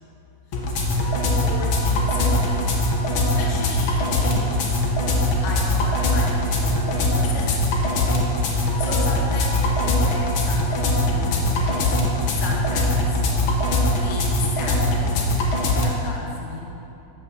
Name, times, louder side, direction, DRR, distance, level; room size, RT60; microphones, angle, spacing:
sound 1, 0.5-15.9, left 1 dB, 65° left, 1.3 m, -21 dB
voice 1, 1.4-2.8 3.2-4.8 5.4-7.6 8.5-12.0 12.3-13.6 13.9-15.2 15.8-16.7, left 3 dB, 85° left, -2 dB, 0.9 m, -35 dB
8.9 x 5.9 x 6.9 m, 2.9 s
omnidirectional pair, 3.6 m